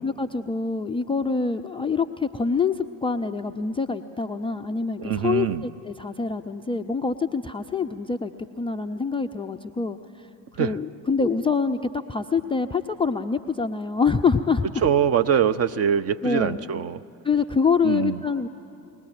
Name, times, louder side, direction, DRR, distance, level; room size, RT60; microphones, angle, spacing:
voice 1, 0.0-8.3 8.6-10.0 10.5-14.9 16.2-16.7 17.2-18.5, left 5 dB, 10° left, 6 dB, 0.4 m, -25 dB
voice 2, 5.0-5.6 10.6-10.7 14.8-17.0 17.8-18.2, right 8 dB, 30° right, 10 dB, 0.6 m, -23 dB
21.0 x 19.0 x 7.6 m, 2.7 s
figure-of-eight pair, 55°, 49 cm